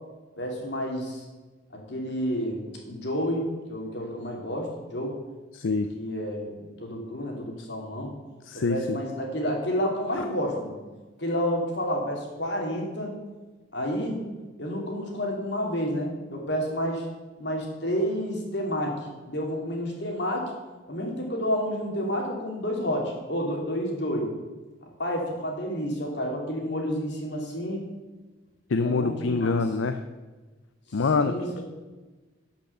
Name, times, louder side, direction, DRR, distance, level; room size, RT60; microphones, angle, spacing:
voice 1, 0.4-1.2 1.9-5.2 5.9-6.5 6.8-8.1 8.5-10.8 11.2-13.2 13.7-14.2 14.6-17.1 17.4-20.5 20.9-24.3 25.0-27.8 28.8-29.6 30.9-31.6, equal, 60° left, 0 dB, 2.7 m, -30 dB
voice 2, 5.5-5.9 8.4-9.0 28.7-30.0 30.9-31.3, left 4 dB, 80° left, 9 dB, 0.5 m, -25 dB
12.0 x 6.0 x 6.8 m, 1.2 s
head